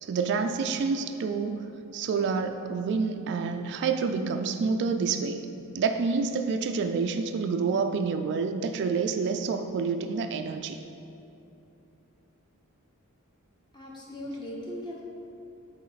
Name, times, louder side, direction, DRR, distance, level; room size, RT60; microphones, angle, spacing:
voice 1, 0.0-5.5 5.7-10.8, right 5 dB, 55° right, 7 dB, 0.3 m, -28 dB
voice 2, 13.7-15.0, left 1 dB, 20° left, -3 dB, 1.2 m, -38 dB
8.4 x 4.1 x 4.0 m, 2.9 s
head